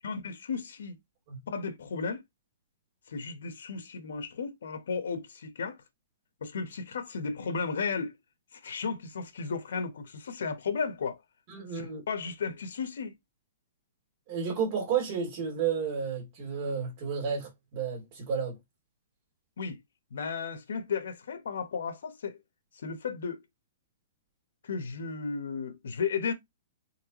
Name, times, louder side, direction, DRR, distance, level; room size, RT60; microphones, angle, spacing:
voice 1, 0.0-1.0 1.5-2.2 3.1-5.8 6.4-8.1 8.5-11.2 11.7-13.2 19.6-19.8 20.1-22.4 22.7-23.4 24.6-26.3, left 5 dB, 80° left, 1.2 m, -34 dB
voice 2, 11.5-12.0 14.3-18.5, right 6 dB, 30° right, 2.8 m, -31 dB
4.5 x 3.8 x 3.0 m
hypercardioid pair, 170°, 0 cm